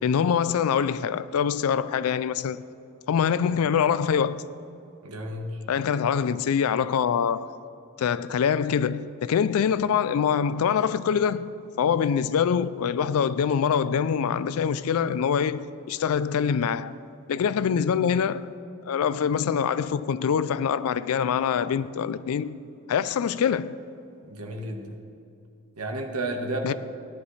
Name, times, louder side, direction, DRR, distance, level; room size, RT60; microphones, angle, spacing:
voice 1, 0.0-2.6 3.1-4.4 5.7-7.6 8.0-17.0 17.3-18.5 18.9-22.6 22.9-23.8 26.6-26.7, left 7 dB, 75° left, 0.3 m, -24 dB
voice 2, 5.0-5.6 24.3-25.0 25.8-26.7, right 1 dB, 85° right, 1.4 m, -32 dB
16.5 x 10.5 x 3.2 m
head